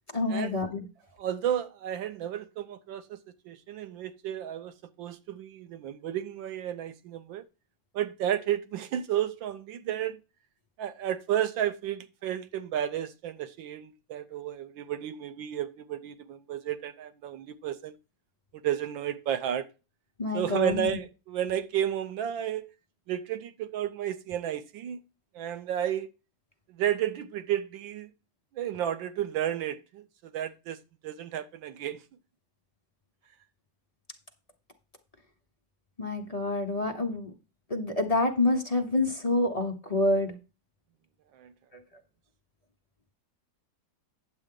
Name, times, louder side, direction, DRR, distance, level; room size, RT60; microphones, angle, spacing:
voice 1, 0.1-0.8 20.2-21.0 36.0-37.3 37.7-40.4, left 2 dB, 30° left, 0.8 m, -27 dB
voice 2, 1.2-3.2 3.5-4.7 5.0-7.4 7.9-10.2 10.8-17.9 18.6-19.7 20.3-22.6 23.1-25.0 25.3-26.1 26.7-28.1 28.6-30.0 30.3-30.8 31.0-32.0 41.4-41.5, right 10 dB, 85° right, 1.5 m, -32 dB
9.2 x 7.6 x 3.8 m
omnidirectional pair, 2.0 m